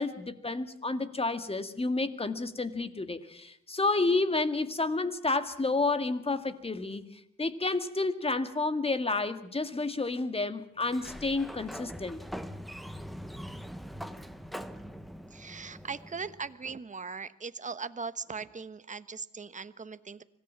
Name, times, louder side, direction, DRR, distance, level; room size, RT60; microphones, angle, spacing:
voice 1, 0.0-7.0 7.4-12.2, left 3 dB, 20° left, 10 dB, 2.1 m, -30 dB
Sliding door, 10.8-16.5, equal, ahead, 1.3 m, -43 dB
voice 2, 15.3-20.2, right 5 dB, 25° right, 13 dB, 1.2 m, -39 dB
25.5 x 17.5 x 7.3 m, 0.76 s
cardioid pair, 90°, 30 cm